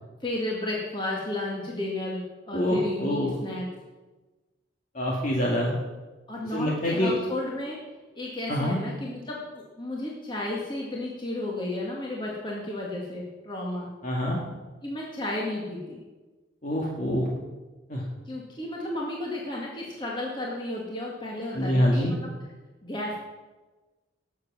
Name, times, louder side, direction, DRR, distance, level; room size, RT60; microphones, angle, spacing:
voice 1, 0.2-3.6 6.3-7.8 8.2-13.9 14.8-16.0 18.3-22.2 22.8-23.2, left 1 dB, 25° left, -3 dB, 2.0 m, -33 dB
voice 2, 2.5-3.3 4.9-5.7 6.5-7.2 8.5-8.8 14.0-14.4 16.6-17.3 17.9-18.0 21.5-22.1, equal, 40° left, -3 dB, 1.9 m, -25 dB
19.0 x 7.6 x 6.1 m, 1.2 s
head